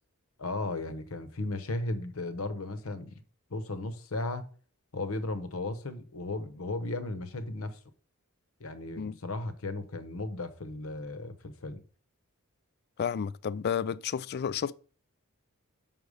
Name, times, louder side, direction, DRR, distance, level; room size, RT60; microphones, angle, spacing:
voice 1, 0.4-3.2 3.5-4.5 4.9-7.8 8.6-11.8, left 2 dB, 70° left, 0.9 m, -35 dB
voice 2, 13.0-14.7, left 7 dB, 50° left, 0.3 m, -31 dB
5.8 x 5.4 x 4.8 m
head